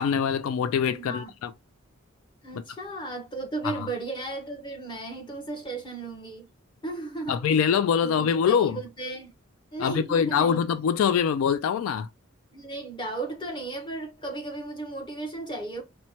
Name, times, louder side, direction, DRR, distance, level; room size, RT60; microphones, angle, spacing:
voice 1, 0.0-1.5 3.6-3.7 7.3-8.8 9.8-12.1, left 7 dB, 80° left, 0.3 m, -24 dB
voice 2, 0.9-1.3 2.4-6.5 6.8-7.5 8.0-9.3 9.7-10.6 12.5-15.8, right 2 dB, 25° left, 1.0 m, -35 dB
4.2 x 2.2 x 2.8 m
head